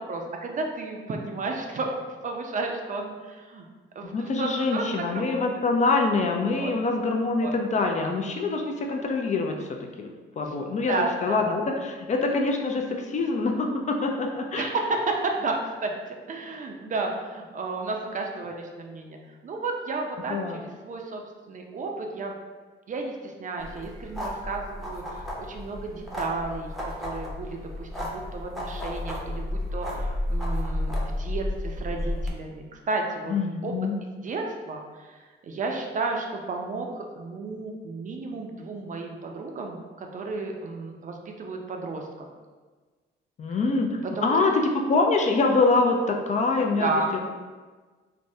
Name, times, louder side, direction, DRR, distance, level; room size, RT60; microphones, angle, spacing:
voice 1, 0.1-1.9 2.2-3.7 4.0-5.4 6.5-6.7 7.4-7.5 10.5-10.6 10.9-11.4 14.5-15.9 16.3-19.2 19.4-20.4 20.8-22.3 22.9-33.3 33.6-33.7 34.2-42.1 44.0-44.4 46.8-47.1, right 3 dB, 40° right, 2 dB, 0.4 m, -32 dB
voice 2, 4.0-10.1 10.4-10.9 11.2-14.7 20.3-20.6 33.3-34.0 43.4-47.0, left 3 dB, 35° left, 2 dB, 0.4 m, -25 dB
sound 1, 23.6-32.3, left 1 dB, ahead, 0.6 m, -32 dB
3.3 x 2.1 x 2.6 m, 1.4 s
cardioid pair, 90°, 20 cm